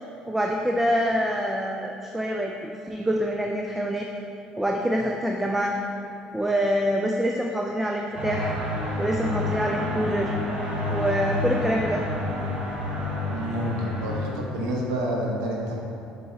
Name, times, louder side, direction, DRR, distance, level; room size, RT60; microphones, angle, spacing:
voice 1, 0.3-4.1 4.6-5.8 6.3-8.5 9.0-10.3 10.9-12.0, equal, 5° right, 1 dB, 0.4 m, -25 dB
sound 1, 8.2-14.3, left 1 dB, 35° right, 1.3 m, -29 dB
voice 2, 13.3-15.7, equal, 70° right, -1 dB, 1.0 m, -28 dB
7.5 x 3.7 x 4.0 m, 2.6 s
figure-of-eight pair, 55°, 4 cm